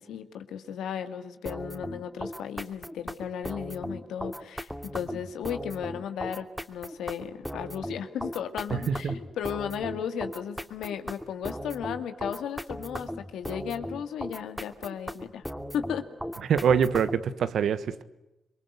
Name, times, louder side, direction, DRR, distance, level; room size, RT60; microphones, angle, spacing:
voice 1, 0.0-15.4 15.7-16.1, left 8 dB, 85° left, 2.1 m, -35 dB
sound 1, 1.5-17.3, equal, ahead, 2.8 m, -37 dB
voice 2, 8.7-9.1 16.5-18.0, right 7 dB, 75° right, 1.4 m, -25 dB
27.0 x 23.0 x 8.2 m
supercardioid pair, 45°, 0 cm